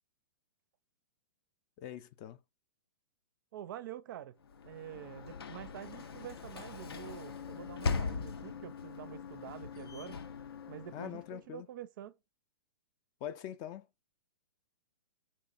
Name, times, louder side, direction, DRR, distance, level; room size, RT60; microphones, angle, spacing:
voice 1, 1.8-2.4 10.9-11.7 13.2-13.8, left 11 dB, 30° left, 0.3 m, -43 dB
voice 2, 3.5-4.4 4.6-10.2 10.7-12.1, right 11 dB, 55° right, 0.4 m, -47 dB
Sliding door / Slam, 4.4-11.4, left 4 dB, 90° left, 0.6 m, -40 dB
3.5 x 2.0 x 3.8 m
hypercardioid pair, 135°, 12 cm